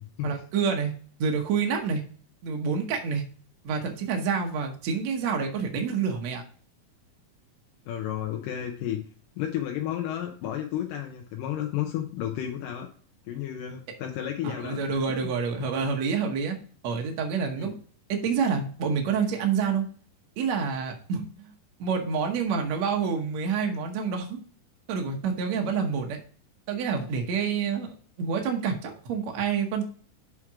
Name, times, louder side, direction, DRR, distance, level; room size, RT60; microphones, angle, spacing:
voice 1, 0.2-0.9 1.2-2.0 2.4-3.2 3.6-6.4 14.4-16.6 16.8-17.7 18.1-19.9 20.4-21.5 21.8-24.4 24.9-26.2 26.7-27.9 28.2-29.8, right 6 dB, 65° right, 2 dB, 1.9 m, -28 dB
voice 2, 7.9-9.0 9.4-12.9 13.3-15.3 17.6-17.8, left 11 dB, 75° left, 2 dB, 2.4 m, -32 dB
7.4 x 5.1 x 4.8 m, 0.43 s
omnidirectional pair, 4.1 m